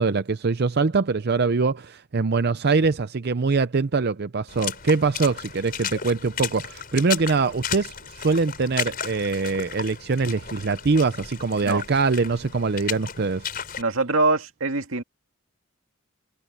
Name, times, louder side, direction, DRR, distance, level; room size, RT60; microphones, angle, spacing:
voice 1, 0.0-13.4, right 4 dB, 55° right, 0.6 m, -23 dB
Water / Splash splatter, 4.5-13.8, left 8 dB, 45° left, 5.2 m, -34 dB
voice 2, 13.8-15.0, right 3 dB, 85° right, 2.1 m, -23 dB
head